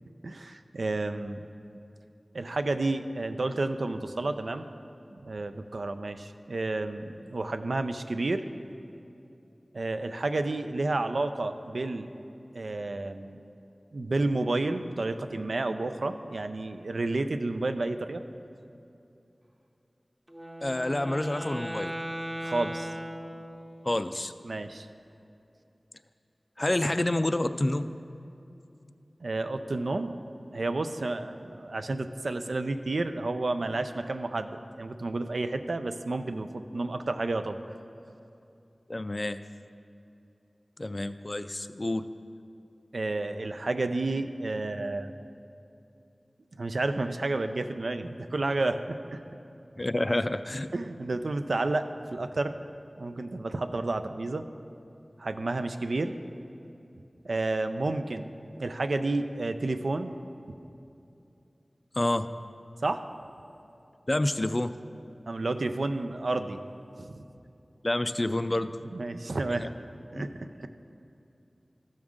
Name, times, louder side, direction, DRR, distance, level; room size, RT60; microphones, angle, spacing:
voice 1, 0.2-1.5 2.3-4.7 5.1-8.5 9.7-12.1 12.5-13.4 13.9-18.2 22.4-22.9 24.4-24.9 29.2-30.1 30.5-37.6 42.9-45.1 46.6-49.2 50.1-50.2 50.7-52.5 53.0-54.4 55.2-56.2 57.2-58.3 58.6-60.2 62.8-63.0 65.3-66.6 67.0-67.2 68.9-69.7 70.1-70.7, right 2 dB, 85° right, 8 dB, 0.4 m, -31 dB
Wind instrument woodwind instrument, 20.3-23.9, equal, 15° right, 0.7 m, -38 dB
voice 2, 20.6-22.0 23.8-24.3 26.6-27.9 38.9-39.4 40.8-42.1 49.8-50.7 61.9-62.3 64.1-64.7 67.8-68.8 69.6-69.7 70.1-70.2, left 1 dB, 35° left, 10 dB, 0.3 m, -28 dB
14.0 x 6.3 x 3.6 m, 2.7 s
wide cardioid pair, 65°, 0 cm